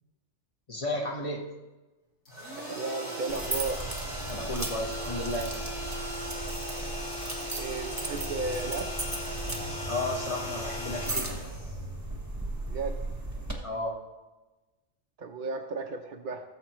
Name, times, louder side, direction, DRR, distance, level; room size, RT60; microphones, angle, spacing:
voice 1, 0.7-1.5 4.3-5.5 9.9-11.4 13.6-14.0, left 2 dB, 30° left, 0 dB, 1.2 m, -33 dB
sound 1, 2.3-12.2, equal, 70° left, 4.4 m, -38 dB
voice 2, 2.5-3.8 7.5-8.9 12.7-12.9 15.2-16.4, right 3 dB, 50° right, 2 dB, 0.7 m, -34 dB
sound 2, 3.3-13.5, right 2 dB, 15° right, 1.0 m, -36 dB
16.5 x 7.3 x 3.0 m, 1.1 s
omnidirectional pair, 1.2 m